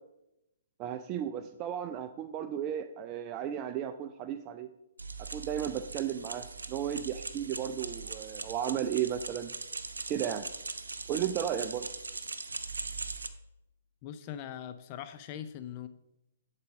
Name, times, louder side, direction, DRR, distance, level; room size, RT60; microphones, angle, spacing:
voice 1, 0.8-4.7 5.3-9.5 10.1-10.5 11.1-11.9, right 10 dB, 30° right, 8 dB, 0.4 m, -34 dB
sound 1, 5.0-13.3, right 4 dB, 80° right, 0.7 m, -40 dB
voice 2, 14.0-15.9, left 10 dB, 35° left, 10 dB, 0.5 m, -41 dB
10.5 x 4.1 x 4.7 m, 0.88 s
figure-of-eight pair, 130°, 0 cm